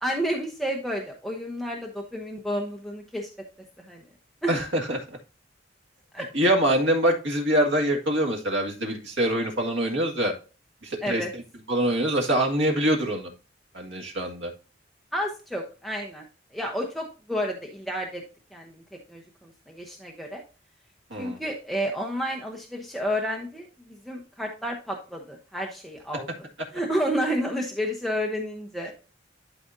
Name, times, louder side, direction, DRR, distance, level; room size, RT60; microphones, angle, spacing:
voice 1, 0.0-3.3 3.8-4.0 4.4-4.5 6.1-6.3 11.0-11.3 15.1-16.2 16.5-18.2 18.5-18.8 19.1-20.4 21.2-23.7 24.0-26.3 26.7-28.9, equal, ahead, 0 dB, 0.9 m, -30 dB
voice 2, 4.5-5.2 6.3-10.3 10.8-11.4 11.7-13.3 13.7-14.5 21.1-21.4, right 1 dB, 85° right, 2 dB, 2.0 m, -24 dB
12.0 x 5.0 x 2.7 m, 0.34 s
head